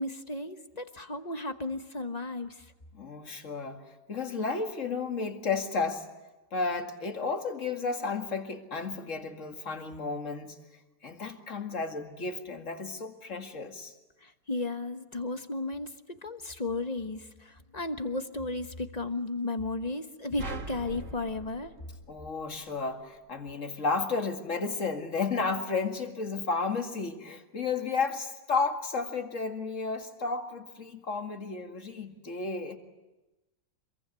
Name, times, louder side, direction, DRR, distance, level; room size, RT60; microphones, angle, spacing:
voice 1, 0.0-2.7 14.2-15.9 16.2-21.7, left 2 dB, 25° left, 1.1 m, -34 dB
voice 2, 2.9-3.8 4.1-6.1 6.5-10.6 11.0-13.9 22.1-32.8, left 4 dB, 45° left, 2.4 m, -32 dB
sound 1, 20.4-22.8, right 3 dB, 45° right, 2.2 m, -41 dB
26.5 x 22.5 x 9.7 m
omnidirectional pair, 1.9 m